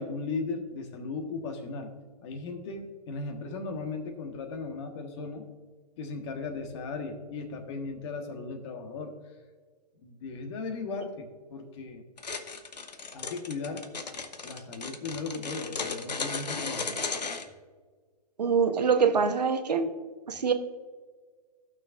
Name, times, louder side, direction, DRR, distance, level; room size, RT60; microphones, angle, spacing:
voice 1, 0.0-1.9 2.2-5.4 6.0-9.2 10.0-12.0 13.1-13.9 14.4-17.0, left 4 dB, 45° left, 5 dB, 1.4 m, -37 dB
sound 1, 12.2-17.5, left 4 dB, 85° left, 1.0 m, -35 dB
voice 2, 18.4-19.9 20.3-20.5, right 6 dB, 80° right, 8 dB, 1.0 m, -24 dB
14.5 x 6.2 x 2.5 m, 1.5 s
hypercardioid pair, 125°, 21 cm